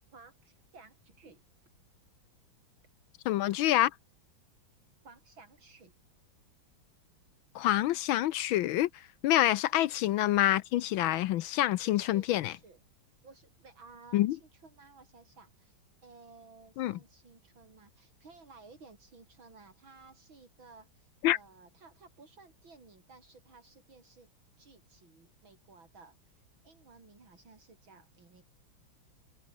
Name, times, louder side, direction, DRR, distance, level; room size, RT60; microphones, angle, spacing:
voice 1, 0.1-1.4 5.0-5.9 9.7-9.8 11.8-12.8 13.2-24.3 24.6-28.5, right 4 dB, 70° right, 5.2 m, -56 dB
voice 2, 3.3-3.9 7.5-8.9 9.2-12.5 14.1-14.4 16.8-17.0 21.2-21.4, left 14 dB, 75° left, 1.4 m, -27 dB
omnidirectional pair, 2.2 m